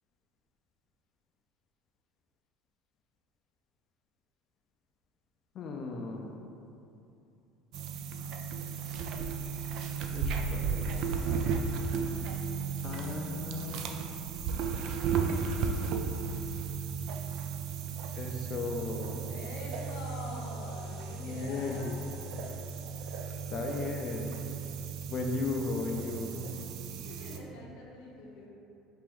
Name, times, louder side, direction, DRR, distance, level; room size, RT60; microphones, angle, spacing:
voice 1, 5.5-6.3 10.1-11.7 12.8-14.0 18.1-19.3 21.2-22.0 23.5-24.4 25.1-26.5, left 3 dB, 45° left, 2 dB, 0.4 m, -36 dB
sound 1, 7.7-27.4, right 6 dB, 60° right, 0.3 m, -35 dB
voice 2, 19.2-22.0 26.8-28.5, left 2 dB, 85° left, -4 dB, 0.8 m, -45 dB
4.4 x 2.5 x 3.5 m, 2.7 s
supercardioid pair, 115°, 0 cm